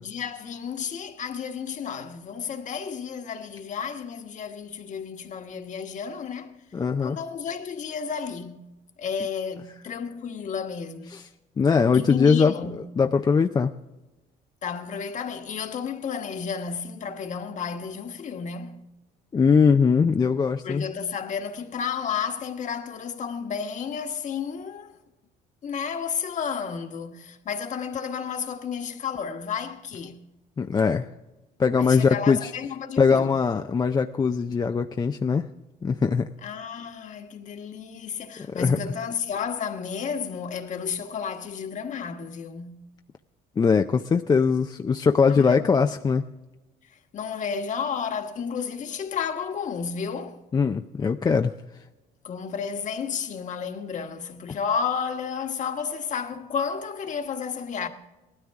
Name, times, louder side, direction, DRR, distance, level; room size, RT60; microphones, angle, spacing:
voice 1, 0.0-6.5 7.0-8.7 9.0-11.1 11.9-12.8 14.6-18.8 20.6-25.0 25.6-30.2 31.8-33.4 36.4-42.8 45.3-45.7 46.9-50.4 52.2-57.9, left 6 dB, 45° left, 1.4 m, -32 dB
voice 2, 6.7-7.2 11.1-11.2 11.6-13.7 19.3-20.8 30.6-31.1 31.6-32.5 33.0-35.5 35.8-36.3 38.5-38.8 43.6-46.2 50.5-51.5, left 5 dB, 25° left, 0.5 m, -21 dB
18.5 x 13.0 x 3.6 m
cardioid pair, 110°, 17 cm